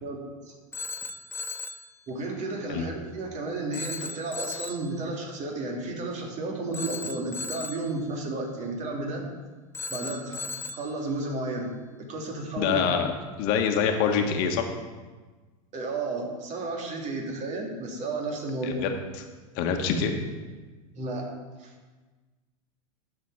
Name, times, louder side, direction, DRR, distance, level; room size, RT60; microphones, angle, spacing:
Telephone, 0.7-1.9 3.7-4.9 6.7-7.9 9.7-10.9, left 3 dB, 15° left, 0.5 m, -36 dB
voice 1, 2.1-9.2 9.9-10.5 10.7-11.7 12.1-12.8 15.7-18.9 20.9-21.3 21.6-21.7, right 2 dB, 40° right, 1 dB, 2.6 m, -32 dB
voice 2, 12.6-13.1 13.4-14.6 18.6-18.9 19.5-20.2, left 7 dB, 55° left, 4 dB, 1.5 m, -25 dB
11.5 x 6.7 x 4.8 m, 1.3 s
hypercardioid pair, 105°, 19 cm